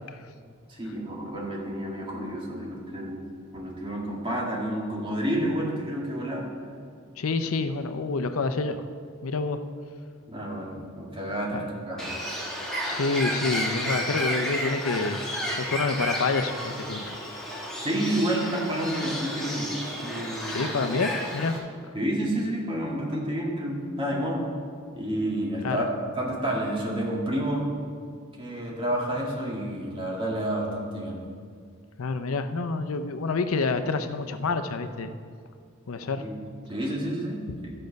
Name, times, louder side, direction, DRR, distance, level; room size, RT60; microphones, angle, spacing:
voice 1, 0.7-3.2 3.5-6.5 10.3-12.4 17.8-19.7 20.0-20.6 21.9-24.4 24.9-27.7 28.4-31.2 36.2-36.3 36.7-37.4, right 1 dB, 25° right, -3 dB, 2.0 m, -30 dB
voice 2, 7.2-8.8 9.2-9.6 11.5-11.7 12.8-15.3 15.7-17.2 20.5-21.5 24.1-24.2 25.6-25.8 32.0-35.1 35.9-36.2, left 3 dB, 90° left, 9 dB, 0.6 m, -28 dB
Bird, 12.0-21.6, equal, ahead, 1.5 m, -32 dB
13.0 x 6.6 x 5.2 m, 2.2 s
head